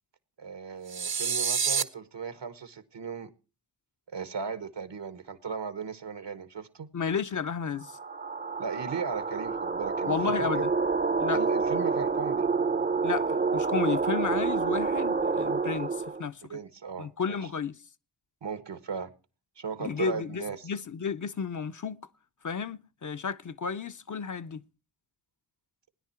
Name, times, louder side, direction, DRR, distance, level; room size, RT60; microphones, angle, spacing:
voice 1, 0.4-3.3 4.1-6.9 8.6-10.5 11.3-12.5 16.5-17.5 18.4-19.1 19.6-20.7, right 6 dB, 75° right, 1.3 m, -37 dB
sound 1, 0.9-1.8, right 6 dB, 60° right, 0.9 m, -27 dB
voice 2, 6.9-8.0 10.1-10.7 11.2-11.4 13.0-16.5 17.0-17.8 19.8-22.0 22.4-24.6, left 6 dB, 45° left, 0.6 m, -32 dB
sound 2, 7.8-16.2, right 4 dB, 25° right, 0.6 m, -28 dB
17.0 x 10.0 x 4.4 m
cardioid pair, 45°, 42 cm